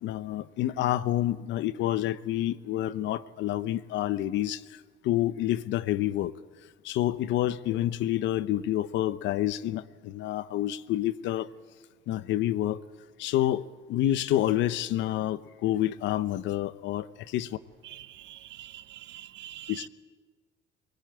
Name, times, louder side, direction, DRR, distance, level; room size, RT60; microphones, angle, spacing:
voice 1, 0.0-6.3 6.8-11.5 12.1-12.8 13.2-17.6 19.7-19.9, left 13 dB, 75° left, 0.9 m, -28 dB
voice 2, 17.8-19.9, right 13 dB, 70° right, 1.2 m, -45 dB
23.5 x 21.5 x 9.1 m
cardioid pair, 165°, 19 cm